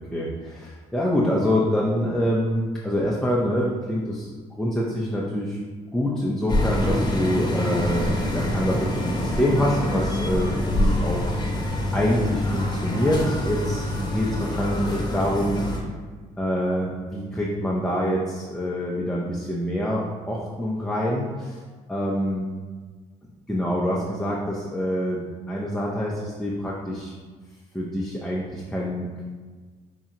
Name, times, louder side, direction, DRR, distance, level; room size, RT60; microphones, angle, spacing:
voice 1, 0.1-4.3 4.6-5.6 5.9-11.3 11.9-15.6 16.4-21.6 21.9-22.5 23.5-27.1 27.7-29.2, equal, 5° left, -5 dB, 0.6 m, -26 dB
sound 1, 6.5-15.8, left 1 dB, 25° left, 1.1 m, -26 dB
5.4 x 2.3 x 2.9 m, 1.4 s
supercardioid pair, 55°, 16 cm